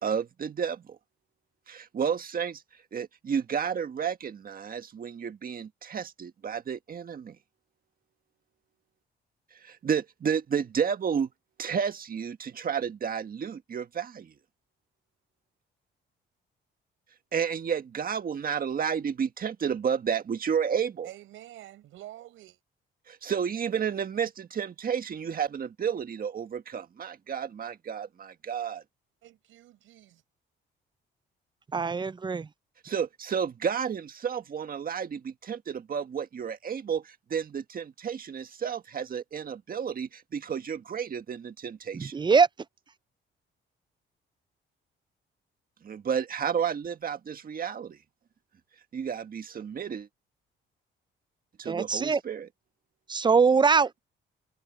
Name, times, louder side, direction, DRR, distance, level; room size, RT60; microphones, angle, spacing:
voice 1, 0.0-1.0 1.7-2.6 2.9-7.4 9.6-11.3 11.6-14.3 17.3-21.1 23.1-28.8 32.8-42.2 45.8-48.0 48.9-50.1 51.6-52.5, right 7 dB, 45° right, 1.7 m, -31 dB
voice 2, 21.0-22.6 29.2-30.2, right 14 dB, 85° right, 6.3 m, -48 dB
voice 3, 31.7-32.5 41.9-42.5 51.7-52.2 53.1-54.0, right 5 dB, 25° right, 0.5 m, -23 dB
cardioid pair, 90°, 20 cm